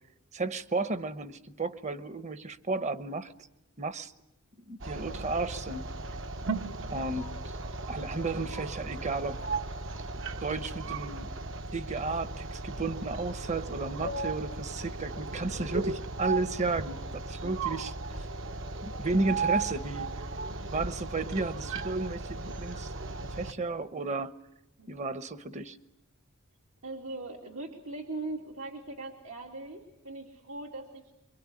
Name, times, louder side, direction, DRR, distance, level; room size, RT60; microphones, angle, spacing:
voice 1, 0.3-3.3 3.8-4.1 4.7-5.8 6.8-7.3 7.9-9.4 10.4-11.3 11.7-17.9 18.8-20.1 20.7-22.9 23.3-24.3 24.9-25.8, right 3 dB, 30° right, 14 dB, 1.0 m, -33 dB
sound 1, 4.8-23.5, right 3 dB, 60° right, 1.1 m, -36 dB
voice 2, 26.8-31.0, right 2 dB, 85° right, 0 dB, 2.8 m, -40 dB
25.5 x 23.5 x 9.8 m, 0.88 s
head